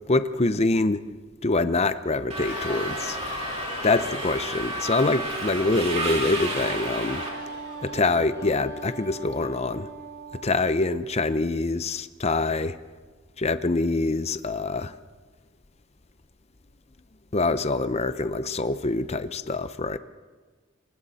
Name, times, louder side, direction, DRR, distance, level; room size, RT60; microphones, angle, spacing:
voice 1, 0.1-1.0 1.4-3.2 3.8-7.3 7.8-9.9 10.4-12.8 13.4-14.9 17.3-20.0, left 3 dB, 30° left, 12 dB, 0.7 m, -25 dB
Crowd, 2.3-8.5, left 4 dB, 60° left, 3.5 m, -38 dB
Subway metro underground, 2.3-7.3, right 2 dB, 30° right, 4.0 m, -32 dB
Wind instrument woodwind instrument, 5.9-10.5, right 2 dB, 60° right, 7.1 m, -39 dB
29.5 x 25.0 x 4.2 m, 1.4 s
head